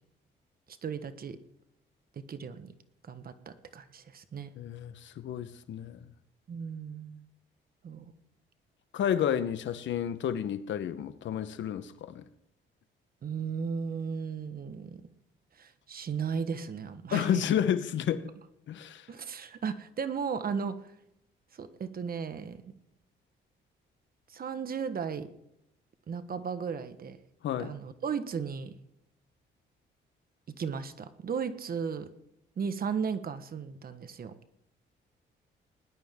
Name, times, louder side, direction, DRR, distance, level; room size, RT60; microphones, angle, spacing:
voice 1, 0.7-1.4 2.1-2.7 3.0-4.5 6.5-7.3 7.8-8.1 13.2-15.0 15.5-17.4 19.1-20.9 21.5-22.7 24.3-25.3 26.1-27.2 27.6-28.7 30.6-32.1 32.6-34.3, right 6 dB, 50° right, 1.3 m, -35 dB
voice 2, 4.6-6.0 8.9-12.2 17.1-18.3 18.7-19.1 27.4-27.7, left 9 dB, 70° left, 1.0 m, -31 dB
19.5 x 11.5 x 3.7 m
cardioid pair, 90°, 20 cm